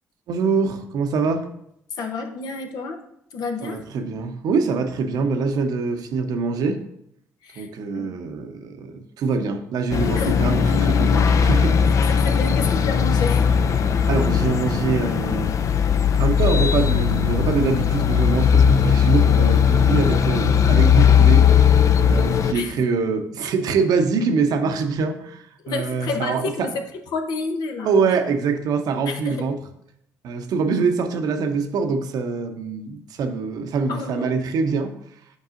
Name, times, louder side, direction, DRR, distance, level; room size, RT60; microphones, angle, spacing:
voice 1, 0.3-1.5 3.6-6.8 7.6-11.7 12.0-12.1 14.1-15.5 16.2-21.7 22.0-26.7 27.8-29.6 30.2-34.9, right 4 dB, 65° right, 6 dB, 0.7 m, -24 dB
voice 2, 2.0-3.0 3.3-3.8 7.4-7.7 7.9-8.1 10.1-10.4 11.8-13.5 22.5-22.9 25.6-26.8 27.1-27.9 29.1-29.5 33.9-34.3, left 4 dB, 70° left, 5 dB, 0.8 m, -30 dB
sound 1, 9.9-22.5, left 7 dB, 50° left, 0.4 m, -18 dB
8.2 x 4.7 x 2.5 m, 0.76 s
supercardioid pair, 60°, 7 cm